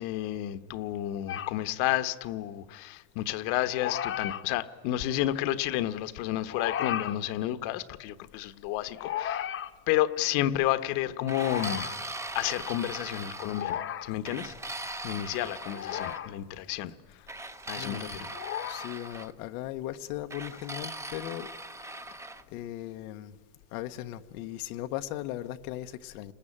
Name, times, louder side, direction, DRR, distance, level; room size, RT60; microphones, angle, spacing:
voice 1, 0.0-9.5 9.9-11.9 12.3-16.9 17.7-18.3, left 13 dB, 65° left, 1.2 m, -31 dB
sound 1, 1.3-1.5 3.7-4.4 6.5-7.2 9.0-9.7 11.3-12.0 13.5-14.1 15.7-16.3 18.3-18.9, left 10 dB, 30° left, 0.9 m, -34 dB
sound 2, 11.3-13.8 14.2-16.2 17.3-19.3 20.3-22.4, right 2 dB, 5° right, 0.7 m, -40 dB
voice 2, 17.7-18.3 18.7-21.5 22.5-23.4 23.7-26.3, left 13 dB, 90° left, 1.1 m, -38 dB
30.0 x 20.5 x 8.7 m
cardioid pair, 155°, 43 cm